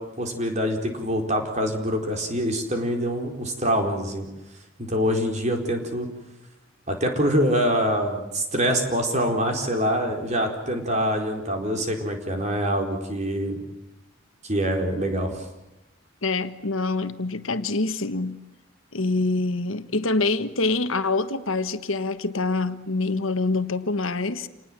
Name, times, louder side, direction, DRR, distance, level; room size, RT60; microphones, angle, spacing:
voice 1, 0.0-4.3 4.8-6.1 6.9-13.6 14.4-15.5, equal, 35° right, 4.4 m, -25 dB
voice 2, 16.2-18.4 18.9-24.5, left 3 dB, 75° left, 1.4 m, -25 dB
28.0 x 19.5 x 7.6 m
head